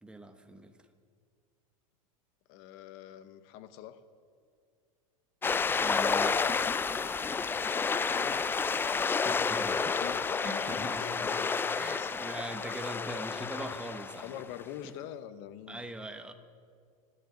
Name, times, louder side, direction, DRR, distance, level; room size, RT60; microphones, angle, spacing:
voice 1, 0.0-0.8 5.8-6.6 9.2-10.0 10.4-11.3 11.7-14.4 14.8-14.9 15.7-16.3, right 1 dB, 5° right, 7 dB, 1.1 m, -41 dB
voice 2, 2.5-4.0 7.9-8.4 8.9-9.5 9.8-12.3 14.2-15.8, left 11 dB, 55° left, 12 dB, 1.0 m, -45 dB
sound 1, 5.4-14.6, left 5 dB, 10° left, 0.3 m, -30 dB
26.0 x 10.0 x 3.9 m, 2.1 s
hypercardioid pair, 110°, 19 cm